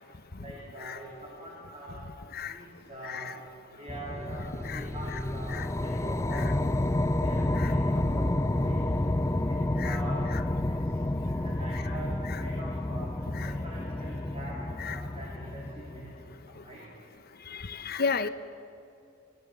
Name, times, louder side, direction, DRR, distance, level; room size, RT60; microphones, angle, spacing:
voice 1, 0.4-2.0 2.5-3.3 3.8-6.5 7.2-9.0 9.5-10.3 10.6-10.7 11.2-12.1 12.4-13.1 13.4-14.6 14.8-16.8, right 1 dB, 30° right, -4 dB, 3.3 m, -44 dB
voice 2, 3.0-3.3 4.6-4.9 5.5-5.7 6.3-6.5 7.6-7.7 9.8-10.0 10.3-10.4 11.7-11.8 12.3-12.4 13.3-13.5 14.8-15.0 17.5-18.3, left 5 dB, 50° left, 12 dB, 0.8 m, -34 dB
sound 1, 3.9-16.4, left 1 dB, 15° left, 0.5 m, -30 dB
22.5 x 18.5 x 6.8 m, 2.5 s
head